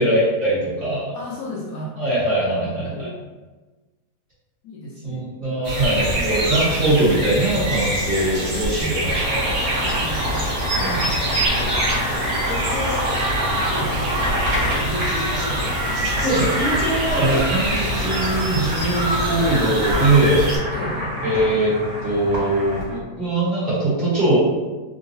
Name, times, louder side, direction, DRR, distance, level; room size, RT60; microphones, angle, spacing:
voice 1, 0.0-1.1 2.0-3.1 5.0-9.6 10.7-11.0 16.2-20.5 21.2-21.7 22.0-24.4, right 1 dB, 35° right, -10 dB, 1.2 m, -21 dB
voice 2, 1.1-2.0 2.6-3.2 4.6-5.2 8.5-9.0 9.8-10.4 10.7-11.1 11.6-13.1 13.4-16.7 20.7-21.2, left 1 dB, 70° left, -4 dB, 1.0 m, -34 dB
sound 1, 5.6-20.6, right 1 dB, 85° right, 1.5 m, -25 dB
Boiling, 8.9-23.0, equal, 50° right, 1.6 m, -28 dB
3.7 x 2.2 x 2.7 m, 1.2 s
omnidirectional pair, 1.8 m